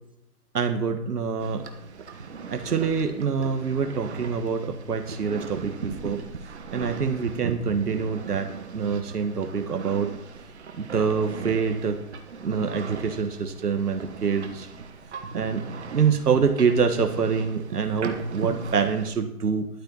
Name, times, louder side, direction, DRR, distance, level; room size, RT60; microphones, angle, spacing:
voice 1, 0.5-1.6 2.5-6.2 6.7-8.5 8.7-10.1 10.7-12.0 12.4-14.7 15.3-15.6 15.9-19.7, right 6 dB, 80° right, 6 dB, 1.5 m, -25 dB
sound 1, 1.4-19.1, right 5 dB, 45° right, 1.3 m, -38 dB
12.5 x 9.1 x 4.1 m, 0.84 s
hypercardioid pair, 165°, 46 cm